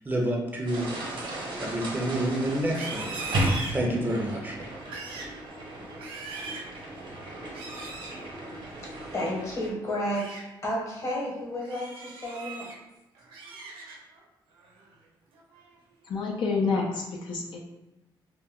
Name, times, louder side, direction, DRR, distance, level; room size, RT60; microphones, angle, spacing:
voice 1, 0.1-0.9 1.6-3.2 3.7-4.6, right 1 dB, 20° right, -1 dB, 0.5 m, -28 dB
sound 1, 0.7-9.7, right 1 dB, 70° right, 0.9 m, -35 dB
Livestock farm animals working animals, 2.6-4.3 4.7-5.4 5.8-6.7 7.5-8.2 9.8-10.4 10.9-11.1 11.6-12.8 13.1-14.2 14.6-14.9 15.3-15.8, right 3 dB, 90° right, 0.5 m, -40 dB
voice 2, 8.8-12.7, equal, 35° left, -3 dB, 1.0 m, -32 dB
voice 3, 16.0-17.6, left 4 dB, 65° left, -1 dB, 0.4 m, -28 dB
2.2 x 2.1 x 3.5 m, 0.98 s
cardioid pair, 95°, 9 cm